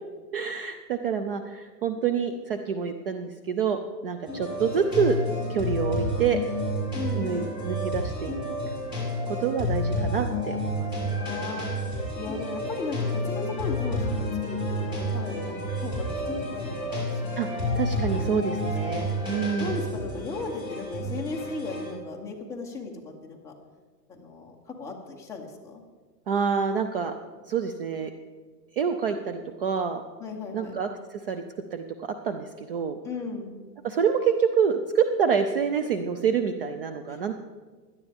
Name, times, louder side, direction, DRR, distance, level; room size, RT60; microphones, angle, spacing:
voice 1, 0.3-5.2 5.5-6.4 7.1-8.3 9.3-11.2 17.4-17.5 17.8-19.7 26.3-27.1 27.5-28.1 28.7-30.0 30.5-31.4 31.7-33.0 33.8-37.4, right 6 dB, 35° right, 8 dB, 0.4 m, -27 dB
sound 1, 4.3-21.9, left 1 dB, 10° right, 4.3 m, -30 dB
voice 2, 6.9-7.5 11.1-11.7 12.1-16.2 16.5-17.7 18.1-19.1 19.6-23.5 24.1-25.8 30.2-30.8 33.0-33.6 37.1-37.4, left 4 dB, 5° left, -2 dB, 0.8 m, -37 dB
17.0 x 11.5 x 3.5 m, 1.4 s
hypercardioid pair, 155°, 50 cm